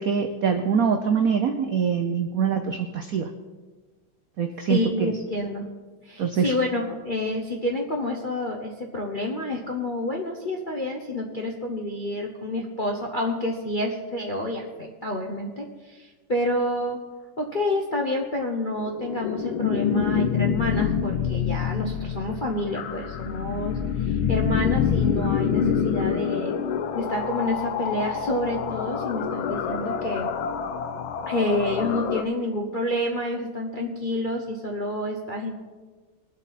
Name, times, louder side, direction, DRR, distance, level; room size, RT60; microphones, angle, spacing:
voice 1, 0.0-3.3 4.4-5.1 6.2-6.5, right 6 dB, 75° right, 6 dB, 0.8 m, -24 dB
voice 2, 4.7-5.7 6.0-17.0 17.4-26.6 26.9-30.3 31.3-35.5, left 1 dB, 45° left, 0 dB, 0.6 m, -28 dB
sound 1, 18.8-32.2, left 7 dB, 70° left, 1.5 m, -26 dB
20.5 x 7.7 x 4.1 m, 1.3 s
omnidirectional pair, 2.4 m